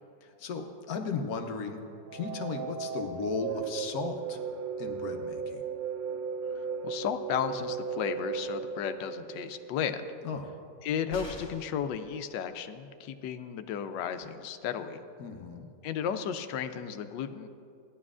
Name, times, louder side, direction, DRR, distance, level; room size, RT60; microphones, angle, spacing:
voice 1, 0.2-1.8 2.1-4.4 4.8-5.6 10.2-10.5 15.2-15.7, left 5 dB, 65° left, 5 dB, 1.1 m, -36 dB
sound 1, 2.1-10.0, right 6 dB, 75° right, 1.1 m, -36 dB
voice 2, 6.8-10.0 10.8-15.0 15.8-17.5, left 8 dB, 85° left, 9 dB, 1.3 m, -34 dB
sound 2, 11.1-11.8 13.8-13.9 14.2-14.3, left 1 dB, 15° left, 1.3 m, -44 dB
16.0 x 10.5 x 2.4 m, 2.5 s
omnidirectional pair, 1.9 m